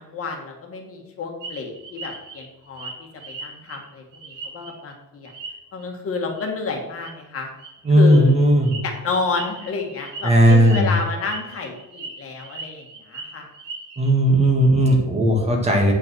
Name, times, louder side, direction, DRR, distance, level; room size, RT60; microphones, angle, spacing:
voice 1, 0.0-5.3 5.7-7.5 7.9-8.3 8.8-13.5, left 4 dB, 45° left, 2 dB, 1.7 m, -30 dB
sound 1, 1.4-4.9 5.2-5.8 6.3-6.5 6.8-7.1 7.6-14.1, right 3 dB, 70° right, 2.4 m, -38 dB
voice 2, 7.9-8.8 10.2-10.9 14.0-15.9, right 1 dB, 20° right, 1 dB, 1.8 m, -16 dB
9.1 x 5.5 x 6.2 m, 1.0 s
cardioid pair, 170°, 32 cm